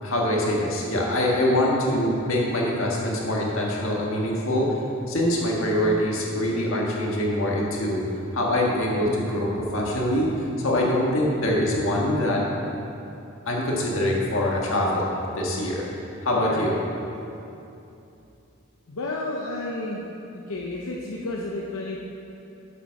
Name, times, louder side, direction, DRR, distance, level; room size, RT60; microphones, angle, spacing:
voice 1, 0.0-4.7 5.1-8.0 8.3-10.3 10.6-12.4 13.5-15.0 15.3-15.9 16.2-16.8, left 1 dB, 70° left, -3 dB, 1.6 m, -24 dB
voice 2, 18.9-20.1 20.3-22.0, left 2 dB, 85° left, -2 dB, 0.8 m, -31 dB
7.3 x 7.1 x 5.8 m, 2.8 s
head